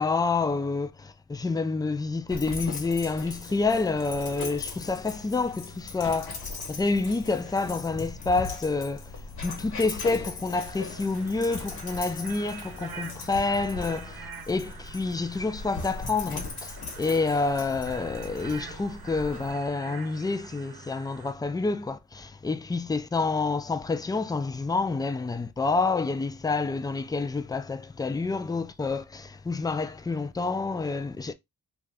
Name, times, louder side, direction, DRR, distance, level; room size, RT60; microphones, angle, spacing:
voice 1, 0.0-9.1 9.4-31.3, left 3 dB, 10° left, 0.3 m, -28 dB
Dog, 2.3-19.5, left 4 dB, 85° left, 1.0 m, -39 dB
sound 1, 10.6-21.3, right 6 dB, 75° right, 0.8 m, -46 dB
2.6 x 2.4 x 3.2 m
cardioid pair, 75°, 37 cm